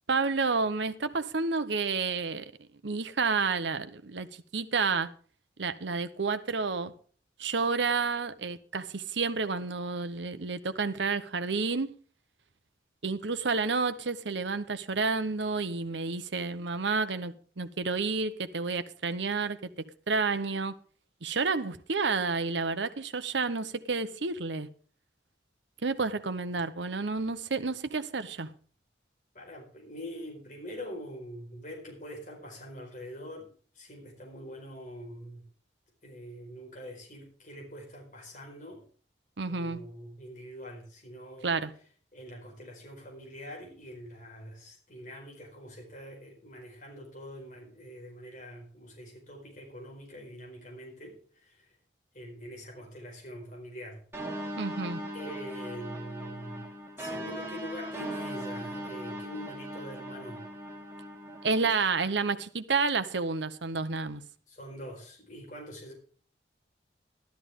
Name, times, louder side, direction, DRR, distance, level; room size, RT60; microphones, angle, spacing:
voice 1, 0.1-2.4 2.8-4.3 4.5-5.1 5.6-6.9 7.4-11.9 13.0-19.6 20.1-20.7 21.2-24.7 25.8-28.5 39.4-39.8 41.4-41.7 54.6-55.0 61.4-64.2, right 4 dB, 80° right, 0.9 m, -30 dB
voice 2, 29.3-33.5 33.7-35.5 36.0-38.8 39.5-41.5 42.1-51.7 52.1-54.0 55.1-56.7 57.0-60.5 64.5-65.9, equal, 45° left, 4.6 m, -44 dB
sound 1, 54.1-61.7, equal, 15° right, 3.1 m, -39 dB
13.5 x 12.5 x 3.6 m
head